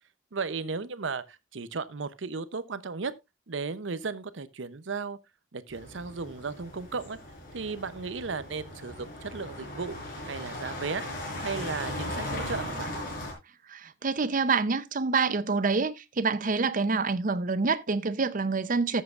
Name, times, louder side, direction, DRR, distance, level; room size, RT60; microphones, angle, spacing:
voice 1, 0.3-3.1 3.5-5.2 5.5-7.2 7.5-10.0 10.2-11.1 11.4-12.9, right 4 dB, 90° right, 0.7 m, -35 dB
sound 1, 5.7-13.3, left 1 dB, 50° left, 4.7 m, -38 dB
voice 2, 13.7-19.0, right 4 dB, 45° right, 0.7 m, -27 dB
14.0 x 7.5 x 2.5 m
head